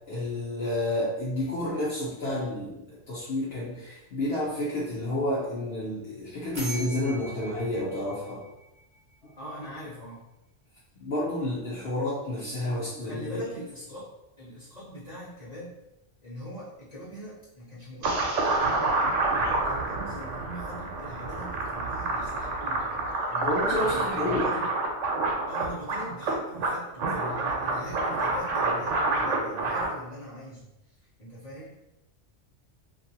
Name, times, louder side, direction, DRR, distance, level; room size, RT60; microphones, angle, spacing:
voice 1, 0.1-8.4 9.2-9.3 11.0-13.4 23.4-24.4, left 1 dB, 60° left, -8 dB, 0.9 m, -30 dB
sound 1, 6.5-9.3, right 2 dB, 35° right, 0.5 m, -41 dB
voice 2, 9.4-10.2 12.6-14.1 14.4-15.7 16.2-18.9 19.2-24.6 25.5-30.7 31.2-31.7, equal, 35° left, -10 dB, 1.0 m, -42 dB
sound 2, 18.0-29.9, right 2 dB, 90° right, 0.9 m, -28 dB
2.7 x 2.5 x 2.7 m, 0.92 s
omnidirectional pair, 1.2 m